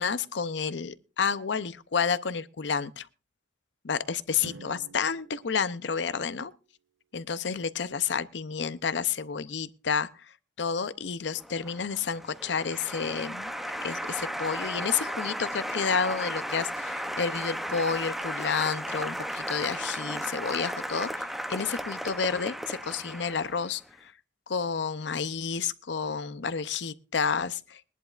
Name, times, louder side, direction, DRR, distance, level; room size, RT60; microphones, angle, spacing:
voice 1, 0.0-3.1 3.8-6.5 7.1-10.3 10.6-13.5 13.8-21.1 21.5-24.1 24.5-27.9, left 6 dB, 70° left, 0.6 m, -30 dB
Drum, 4.4-6.6, right 3 dB, 75° right, 0.8 m, -48 dB
Applause, 11.3-23.8, equal, ahead, 0.7 m, -35 dB
22.5 x 11.0 x 2.5 m
head